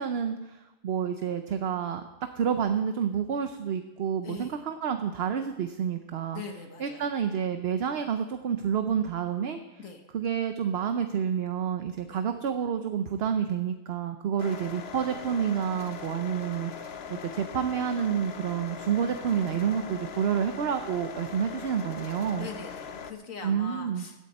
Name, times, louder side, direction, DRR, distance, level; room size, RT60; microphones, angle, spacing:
voice 1, 0.0-2.0 2.3-6.4 6.8-9.8 10.1-22.5 23.4-24.1, right 8 dB, 55° right, 8 dB, 0.9 m, -29 dB
voice 2, 4.2-4.6 6.3-7.1 9.8-10.0 12.0-12.2 14.4-14.5 22.4-24.1, left 5 dB, 80° left, 4 dB, 2.0 m, -41 dB
sound 1, 14.4-23.1, left 6 dB, 55° left, 1.0 m, -40 dB
17.0 x 12.0 x 4.2 m, 0.99 s
omnidirectional pair, 1.4 m